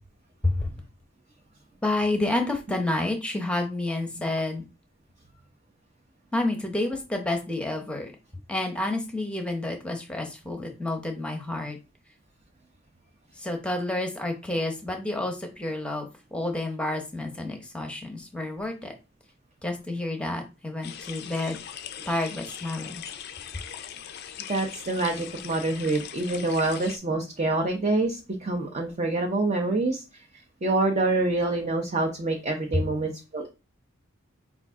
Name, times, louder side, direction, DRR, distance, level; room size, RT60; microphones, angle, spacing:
voice 1, 1.8-4.6 6.3-8.1 8.5-11.8 13.4-18.9 19.6-21.6 22.1-23.0 32.7-32.8, left 2 dB, 5° left, 4 dB, 0.7 m, -29 dB
sound 1, 20.8-27.0, left 9 dB, 50° left, 0.4 m, -40 dB
voice 2, 24.5-30.3 30.6-33.5, right 2 dB, 35° right, 2 dB, 0.5 m, -26 dB
5.2 x 2.4 x 3.5 m, 0.29 s
head